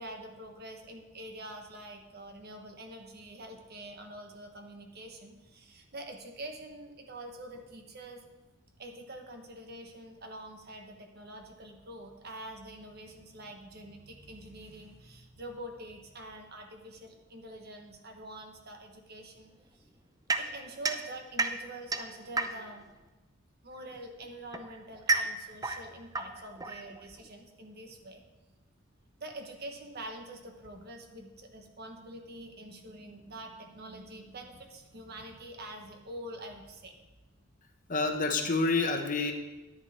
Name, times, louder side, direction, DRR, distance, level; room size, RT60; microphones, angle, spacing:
voice 1, 0.0-8.2 8.8-19.9 20.4-22.8 23.6-28.2 29.2-36.9, right 1 dB, 50° right, 4 dB, 1.3 m, -46 dB
sound 1, 20.3-22.9 23.9-27.3, right 3 dB, 20° right, 0.6 m, -33 dB
voice 2, 37.9-39.3, left 3 dB, 40° left, 5 dB, 1.0 m, -28 dB
10.0 x 10.0 x 4.3 m, 1.1 s
head